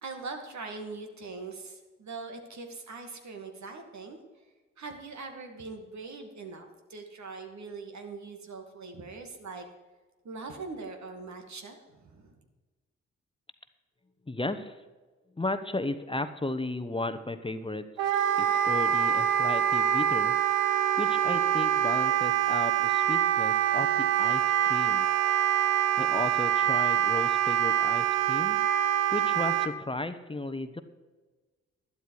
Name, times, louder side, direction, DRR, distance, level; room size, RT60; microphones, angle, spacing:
voice 1, 0.0-4.2 4.8-9.6 10.2-12.4, right 4 dB, 60° right, 4 dB, 2.2 m, -42 dB
voice 2, 14.3-14.8 15.4-17.9 18.4-20.3 21.0-25.1 26.0-28.6 29.1-30.8, left 2 dB, 15° left, 10 dB, 1.0 m, -34 dB
Wind instrument woodwind instrument, 18.0-29.7, right 10 dB, 85° right, 0.7 m, -25 dB
12.5 x 11.5 x 4.8 m, 1.3 s
hypercardioid pair, 40°, 32 cm